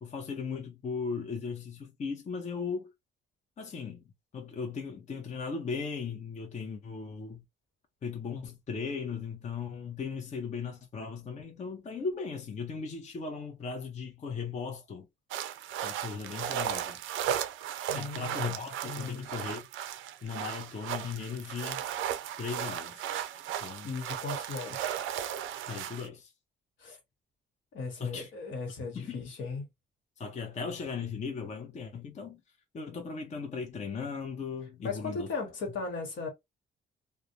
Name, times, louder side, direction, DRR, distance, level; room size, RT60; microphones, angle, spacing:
voice 1, 0.0-2.9 3.6-4.0 4.3-7.4 8.0-15.1 15.8-17.0 17.9-19.7 20.2-21.9 22.4-23.1 23.6-23.9 25.7-26.3 28.0-28.3 28.9-29.2 30.2-32.4 32.7-35.3, left 5 dB, 35° left, 0.6 m, -37 dB
sound 1, 15.3-26.1, right 10 dB, 80° right, 0.4 m, -36 dB
voice 2, 17.9-18.4 18.8-19.3 23.8-25.0 26.8-27.0 27.7-29.7 34.8-36.3, left 4 dB, 70° left, 1.1 m, -37 dB
2.3 x 2.1 x 2.8 m
cardioid pair, 90°, 20 cm